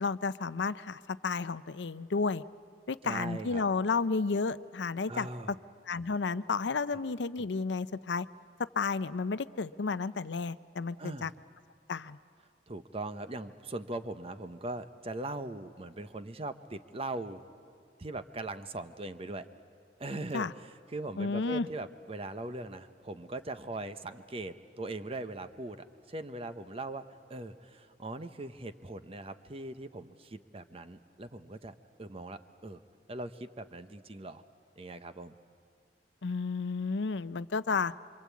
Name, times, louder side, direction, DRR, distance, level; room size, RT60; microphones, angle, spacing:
voice 1, 0.0-2.4 2.9-5.6 5.9-8.3 8.6-11.3 11.9-12.2 20.3-20.5 21.2-21.7 36.2-37.9, left 4 dB, 90° left, 15 dB, 0.6 m, -32 dB
voice 2, 3.0-3.6 5.1-5.6 11.0-11.3 12.7-17.5 18.0-19.5 20.0-27.0 27.3-31.7 32.0-32.8 33.1-34.4 34.8-35.4, right 2 dB, 35° right, 10 dB, 0.9 m, -40 dB
26.5 x 25.0 x 8.5 m, 2.2 s
head